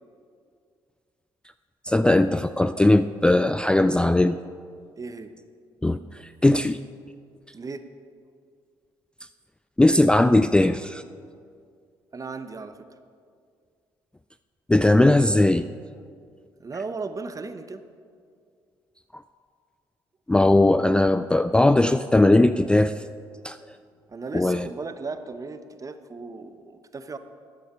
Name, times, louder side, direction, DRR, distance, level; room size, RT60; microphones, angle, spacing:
voice 1, 1.9-4.4 5.8-6.0 6.4-6.8 9.8-11.0 14.7-15.7 20.3-22.9 23.4-23.6 24.3-24.7, left 2 dB, 10° left, 11 dB, 0.3 m, -19 dB
voice 2, 5.0-5.3 7.5-7.8 12.1-13.0 16.6-17.8 24.1-27.2, right 4 dB, 30° right, 10 dB, 0.9 m, -36 dB
13.0 x 9.1 x 4.7 m, 2.2 s
hypercardioid pair, 50°, 10 cm